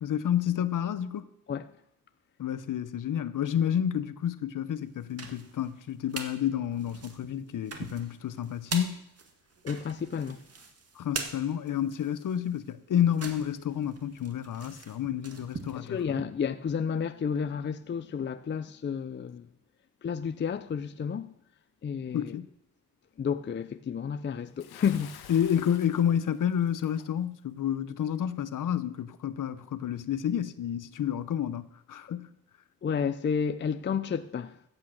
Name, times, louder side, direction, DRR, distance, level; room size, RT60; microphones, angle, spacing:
voice 1, 0.0-1.3 2.4-9.0 10.9-16.2 22.1-22.5 25.3-32.4, left 9 dB, 55° left, 0.9 m, -30 dB
sound 1, 4.9-6.3 6.7-16.2, right 4 dB, 40° right, 2.0 m, -42 dB
voice 2, 9.6-10.4 15.8-19.5 20.0-21.3 21.8-22.4 23.2-25.2 32.8-34.6, left 7 dB, 30° left, 0.5 m, -31 dB
Bathtub (filling or washing) / Splash splatter, 24.6-27.1, left 9 dB, 75° left, 1.4 m, -49 dB
14.0 x 8.5 x 6.5 m
cardioid pair, 105°, 38 cm